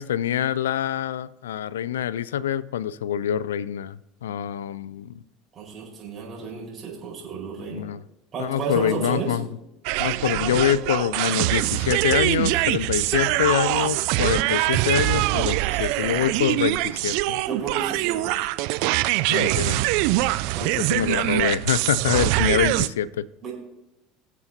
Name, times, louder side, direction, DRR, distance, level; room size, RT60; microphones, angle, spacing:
voice 1, 0.0-5.2 7.6-8.0 8.4-9.5 10.0-17.4 19.3-19.8 20.6-23.2, left 10 dB, 85° left, 18 dB, 0.3 m, -25 dB
voice 2, 5.5-7.9 8.3-9.4 17.4-18.4 20.5-20.8 23.4-23.5, right 5 dB, 40° right, -4 dB, 4.8 m, -32 dB
sound 1, 9.8-22.9, right 18 dB, 70° right, 0.4 m, -23 dB
20.0 x 7.3 x 2.8 m, 0.90 s
hypercardioid pair, 80°, 0 cm